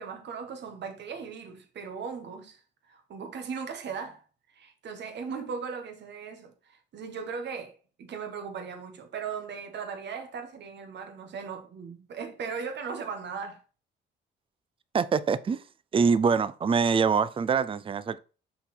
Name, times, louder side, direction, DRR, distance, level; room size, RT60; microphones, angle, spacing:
voice 1, 0.0-2.6 2.9-4.2 4.5-13.6, right 6 dB, 60° right, 1.4 m, -38 dB
voice 2, 14.9-15.6 15.9-18.2, right 5 dB, 25° right, 0.4 m, -24 dB
5.7 x 4.2 x 4.3 m
cardioid pair, 90°, 20 cm